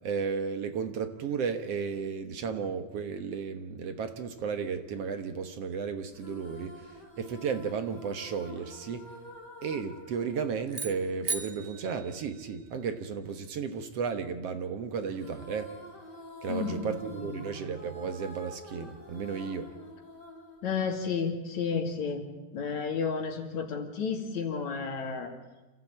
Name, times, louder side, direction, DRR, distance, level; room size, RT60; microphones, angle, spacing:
voice 1, 0.0-6.9 7.2-9.1 9.6-15.7 16.4-19.7, right 6 dB, 60° right, 9 dB, 2.1 m, -34 dB
sound 1, 6.1-11.7 15.2-21.6, equal, 35° left, 3.4 m, -49 dB
sound 2, 10.7-13.0, right 3 dB, 35° right, 0.9 m, -38 dB
voice 2, 16.5-17.5 20.6-22.3 22.5-25.3, left 5 dB, 70° left, 4 dB, 3.6 m, -32 dB
27.5 x 15.5 x 8.6 m, 1.2 s
omnidirectional pair, 3.4 m